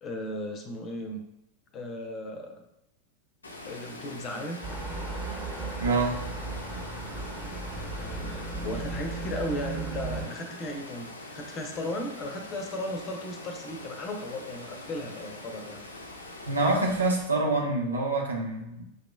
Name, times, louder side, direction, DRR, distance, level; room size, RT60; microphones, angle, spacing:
voice 1, 0.0-1.2 1.7-2.5 3.7-4.6 7.9-15.8, left 1 dB, 30° left, 4 dB, 0.7 m, -36 dB
Water, 3.4-17.2, left 2 dB, 75° left, 0.6 m, -43 dB
sound 1, 4.6-10.3, right 3 dB, 10° right, 1.3 m, -35 dB
voice 2, 5.8-6.2 16.5-18.8, right 2 dB, 80° right, -2 dB, 0.9 m, -26 dB
6.4 x 3.0 x 2.3 m, 0.85 s
figure-of-eight pair, 90°, 0 cm